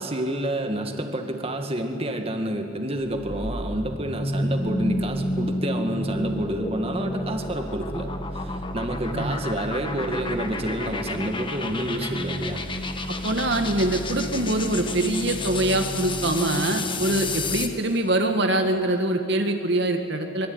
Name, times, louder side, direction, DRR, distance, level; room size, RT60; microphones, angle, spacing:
voice 1, 0.0-8.1 8.3-12.6, right 1 dB, 25° right, 4 dB, 1.9 m, -29 dB
sound 1, 3.1-17.8, left 2 dB, 25° left, 1.4 m, -30 dB
voice 2, 13.1-20.5, right 1 dB, 55° right, 5 dB, 1.8 m, -24 dB
25.0 x 23.0 x 9.6 m, 2.7 s
head